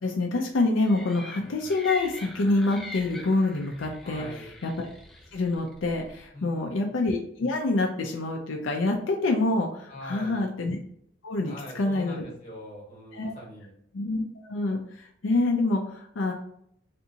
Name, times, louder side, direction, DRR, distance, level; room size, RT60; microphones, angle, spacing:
voice 1, 0.0-4.2 4.6-4.9 5.3-10.8 11.2-12.2 13.1-13.3 13.9-16.3, left 2 dB, 85° left, 2 dB, 0.5 m, -26 dB
sound 1, 0.8-6.3, left 2 dB, ahead, 0.5 m, -43 dB
voice 2, 4.0-4.5 6.3-6.8 9.9-10.4 11.4-13.7, equal, 35° left, -3 dB, 1.4 m, -42 dB
3.4 x 2.7 x 2.7 m, 0.69 s
head